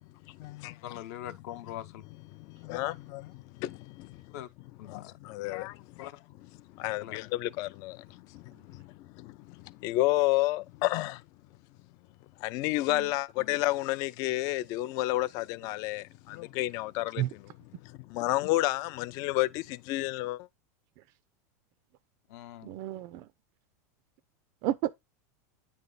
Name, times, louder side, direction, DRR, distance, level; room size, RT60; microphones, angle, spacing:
voice 1, 0.3-0.8 2.3-4.3 4.8-6.1 6.7-11.2 12.4-17.2 17.8-20.5, left 18 dB, 45° left, 0.4 m, -31 dB
voice 2, 0.8-2.0 4.3-4.5 4.8-5.1 6.0-6.1 7.0-7.2 22.3-22.7, left 12 dB, 65° left, 0.8 m, -42 dB
voice 3, 22.6-23.3 24.6-24.9, right 14 dB, 45° right, 0.4 m, -32 dB
9.2 x 3.3 x 3.9 m
supercardioid pair, 150°, 9 cm